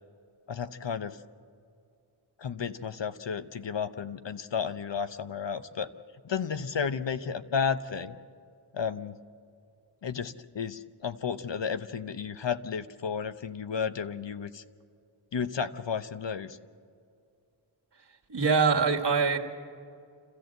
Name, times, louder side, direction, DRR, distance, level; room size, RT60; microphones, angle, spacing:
voice 1, 0.5-1.2 2.4-5.9 6.2-8.1 8.7-9.2 10.0-14.6 15.3-16.6, left 6 dB, 65° left, 11 dB, 0.8 m, -32 dB
voice 2, 18.3-19.4, right 5 dB, 60° right, 2 dB, 1.9 m, -23 dB
29.0 x 13.5 x 7.8 m, 2.4 s
wide cardioid pair, 70°, 47 cm